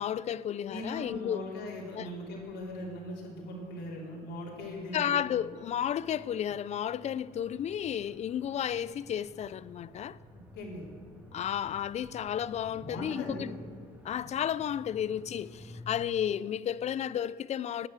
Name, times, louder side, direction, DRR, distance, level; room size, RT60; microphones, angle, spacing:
voice 1, 0.0-1.4 2.0-2.1 4.9-10.2 11.3-13.5 14.0-17.9, left 9 dB, 40° left, 0.4 m, -32 dB
voice 2, 0.7-5.2 10.5-10.9 12.6-13.5, left 1 dB, 80° left, 3.2 m, -40 dB
sound 1, 0.7-16.0, left 1 dB, 10° right, 2.2 m, -53 dB
11.5 x 9.0 x 7.4 m
cardioid pair, 110°, 17 cm